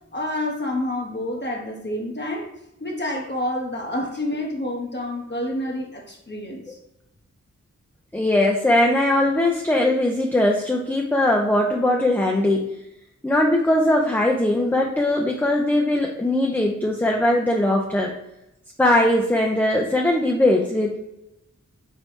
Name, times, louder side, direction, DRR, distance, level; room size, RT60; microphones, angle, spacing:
voice 1, 0.1-2.5 2.8-6.8, left 1 dB, 35° left, -1 dB, 0.8 m, -28 dB
voice 2, 8.1-12.7 13.2-18.1 18.8-21.0, left 1 dB, 5° left, 0 dB, 0.5 m, -20 dB
3.9 x 3.2 x 3.2 m, 0.86 s
cardioid pair, 45°, 30 cm